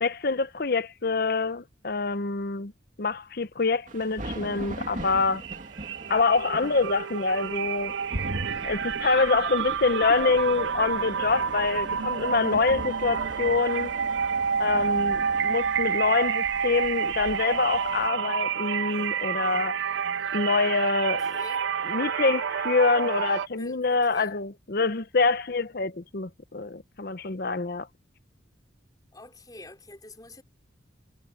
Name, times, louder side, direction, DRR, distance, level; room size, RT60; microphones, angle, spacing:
voice 1, 0.0-2.7 3.0-5.4 6.1-8.0 8.6-13.9 14.6-19.8 20.3-21.4 21.8-27.9, left 4 dB, 50° left, 0.8 m, -26 dB
sound 1, 3.9-18.1, right 1 dB, 40° right, 2.6 m, -43 dB
sound 2, 4.8-5.1 5.4-23.5, right 7 dB, 75° right, 0.4 m, -29 dB
sound 3, 8.1-13.9 14.3-14.4, right 1 dB, 55° right, 1.5 m, -40 dB
voice 2, 21.2-21.7 23.6-24.3 29.1-30.4, left 2 dB, 20° left, 5.1 m, -46 dB
head